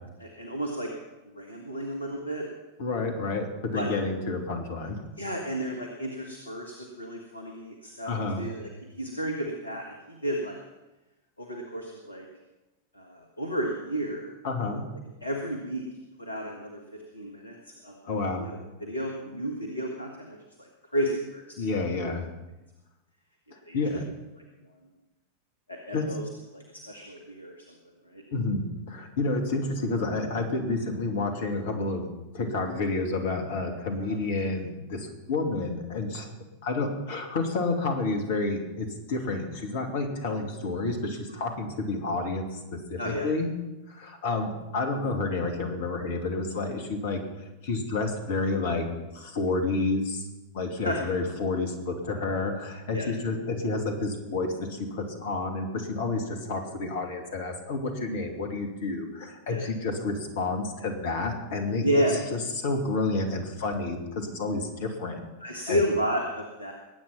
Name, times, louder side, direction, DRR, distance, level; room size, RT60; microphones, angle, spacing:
voice 1, 0.2-0.9 1.3-2.5 3.7-3.9 5.2-8.7 9.0-10.6 11.4-12.3 13.0-14.3 15.2-15.8 16.2-16.8 17.1-17.6 17.8-21.4 23.5-23.8 25.7-26.2 26.5-27.7 28.1-28.2 43.0-43.3 50.8-51.0 52.9-53.1 59.5-59.6 61.8-62.2 65.4-66.7, equal, 80° left, 2 dB, 1.7 m, -32 dB
voice 2, 2.8-3.5 3.7-5.0 8.0-8.5 14.4-14.8 18.1-18.5 21.6-22.2 23.7-24.0 25.9-26.0 28.3-32.1 32.3-36.3 36.6-43.5 43.9-47.2 47.6-48.9 49.1-50.3 50.5-61.9 62.3-65.2 65.7-65.8, left 3 dB, 55° left, 5 dB, 2.6 m, -30 dB
21.0 x 9.0 x 5.9 m, 1.1 s
figure-of-eight pair, 90°, 0 cm